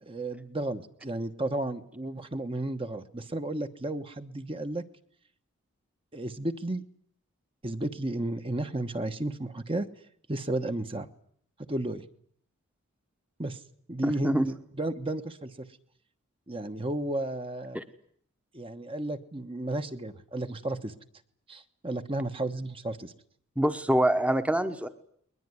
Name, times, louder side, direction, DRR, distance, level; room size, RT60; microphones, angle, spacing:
voice 1, 0.0-4.8 6.1-6.8 7.6-9.9 10.3-11.1 11.7-12.0 13.4-13.6 13.9-15.7 16.5-17.8 18.5-20.9 21.5-23.1, right 1 dB, 25° right, 8 dB, 1.2 m, -33 dB
voice 2, 14.0-14.5 17.7-17.8 23.6-24.9, right 1 dB, 5° right, 10 dB, 1.1 m, -25 dB
21.5 x 20.5 x 9.7 m, 0.63 s
head